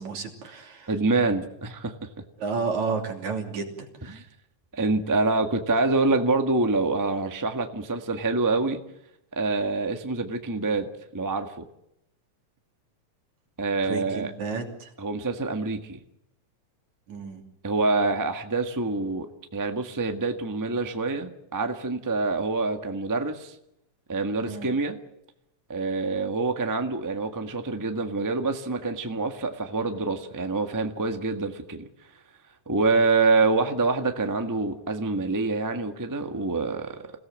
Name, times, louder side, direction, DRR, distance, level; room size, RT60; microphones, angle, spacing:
voice 1, 0.0-0.9 2.4-3.9 13.8-14.9 17.1-17.4 24.4-24.7, right 4 dB, 70° right, 3 dB, 4.3 m, -31 dB
voice 2, 0.9-1.9 4.0-4.2 4.7-8.8 9.3-11.7 13.6-14.3 15.0-16.0 17.6-23.5 24.1-25.0 25.7-31.9 32.7-37.1, right 3 dB, 15° right, 5 dB, 0.8 m, -26 dB
27.0 x 17.5 x 7.6 m, 0.80 s
omnidirectional pair, 3.4 m